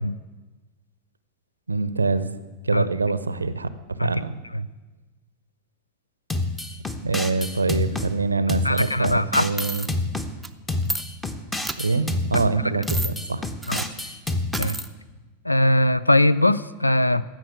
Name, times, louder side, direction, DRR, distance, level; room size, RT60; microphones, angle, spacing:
voice 1, 1.7-2.3 2.6-4.3 7.0-9.9 11.8-13.4 13.7-13.8, right 3 dB, 80° right, 14 dB, 0.7 m, -25 dB
sound 1, 6.3-8.1 8.5-10.3 10.7-12.5 12.9-14.7, left 2 dB, 10° left, 1.0 m, -28 dB
voice 2, 8.6-9.5 12.3-12.4 13.7-13.8 14.6-14.8 15.4-17.2, left 1 dB, 85° left, 18 dB, 0.4 m, -20 dB
sound 2, 9.6-9.9 10.4-10.5 10.8-11.0 11.6-11.8 12.8-13.1 13.6-13.9 14.5-14.9, right 3 dB, 10° right, 0.6 m, -30 dB
15.5 x 6.2 x 8.9 m, 1.2 s
figure-of-eight pair, 90°, 0 cm